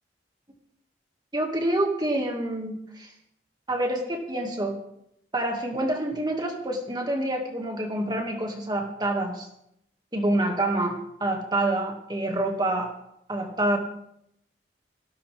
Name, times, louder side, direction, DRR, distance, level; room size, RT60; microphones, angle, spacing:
voice 1, 1.3-3.1 3.7-4.8 5.3-9.5 10.1-12.9 13.3-13.8, right 1 dB, 25° right, 2 dB, 2.3 m, -27 dB
19.0 x 16.0 x 3.6 m, 0.77 s
head